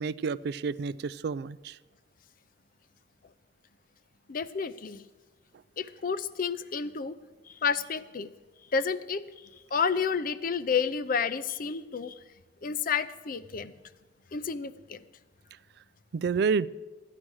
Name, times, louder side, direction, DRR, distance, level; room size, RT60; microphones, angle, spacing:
voice 1, 0.0-1.8 16.1-16.7, right 5 dB, 65° right, 0.3 m, -29 dB
voice 2, 4.3-5.0 5.8-7.1 7.5-8.3 8.7-9.2 9.7-12.2 12.6-13.7 14.3-15.0, left 6 dB, 50° left, 0.5 m, -30 dB
13.5 x 9.8 x 6.3 m
head